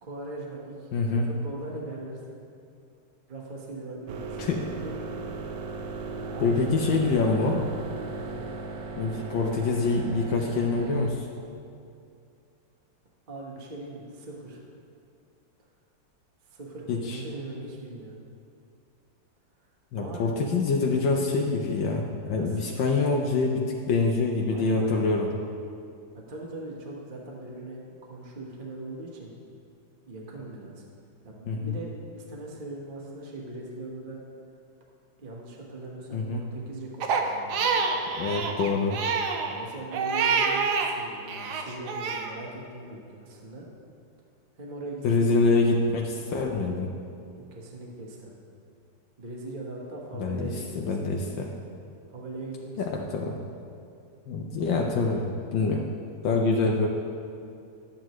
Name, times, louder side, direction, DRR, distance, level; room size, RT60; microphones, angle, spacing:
voice 1, 0.0-2.4 3.3-4.5 4.8-5.1 6.2-6.6 8.2-8.5 13.3-14.6 16.4-18.2 20.0-20.2 22.3-22.8 24.5-25.1 26.1-29.3 30.1-30.8 31.2-34.2 35.2-38.0 39.5-43.6 44.5-45.3 47.3-48.4 49.2-51.2 52.1-53.1, right 2 dB, 30° right, -2 dB, 1.1 m, -40 dB
voice 2, 0.9-1.3 4.4-4.7 6.4-7.6 9.0-11.3 16.9-17.2 19.9-25.3 31.5-31.7 36.1-36.4 38.2-39.0 45.0-46.9 50.1-51.5 52.8-53.3 54.3-55.8 56.2-56.9, left 3 dB, 75° left, 0 dB, 1.4 m, -25 dB
sound 1, 4.1-11.1, right 3 dB, 85° right, 1.5 m, -37 dB
Crying sobbing, 37.0-40.9 41.3-42.3, right 5 dB, 65° right, 1.2 m, -27 dB
11.0 x 8.6 x 3.1 m, 2.5 s
omnidirectional pair, 2.1 m